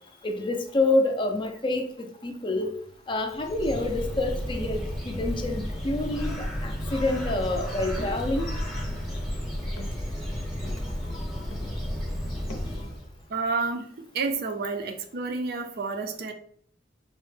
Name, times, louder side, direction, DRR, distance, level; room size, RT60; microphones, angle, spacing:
voice 1, 0.2-2.7 3.1-8.5 12.7-12.8, left 2 dB, 25° left, 5 dB, 0.4 m, -27 dB
Bird, 3.2-13.2, equal, ahead, 0.7 m, -32 dB
sound 1, 7.4-12.0 12.3-12.9, left 2 dB, 75° left, 0.6 m, -45 dB
voice 2, 13.3-13.9 14.1-16.3, right 4 dB, 55° right, 5 dB, 0.5 m, -29 dB
4.1 x 2.1 x 3.2 m, 0.62 s
head